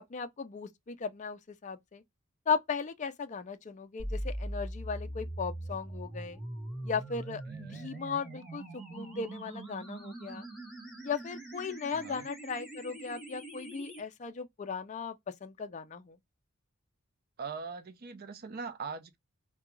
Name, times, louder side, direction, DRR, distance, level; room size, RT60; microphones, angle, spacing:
voice 1, 0.1-2.0 2.5-6.4 6.8-10.5 11.0-16.2, left 5 dB, 35° left, 0.4 m, -37 dB
sound 1, 4.0-14.0, right 1 dB, ahead, 0.9 m, -42 dB
voice 2, 7.5-7.9 11.9-12.3 17.4-19.2, right 5 dB, 45° right, 0.5 m, -41 dB
2.2 x 2.2 x 3.0 m
head